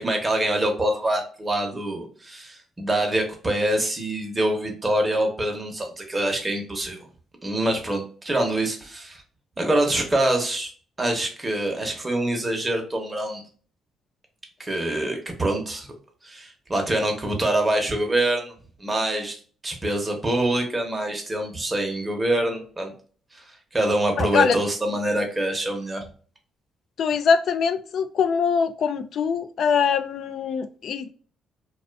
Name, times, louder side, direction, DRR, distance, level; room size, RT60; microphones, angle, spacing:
voice 1, 0.0-7.0 7.4-9.2 9.6-10.7 11.0-13.4 14.6-16.0 16.2-18.5 18.8-19.4 19.6-22.9 23.3-23.4 23.7-26.0, right 1 dB, 20° right, 3 dB, 0.8 m, -25 dB
voice 2, 24.2-24.6 27.0-31.1, left 6 dB, 65° left, 11 dB, 0.3 m, -23 dB
2.4 x 2.3 x 2.2 m, 0.42 s
cardioid pair, 90°, 0 cm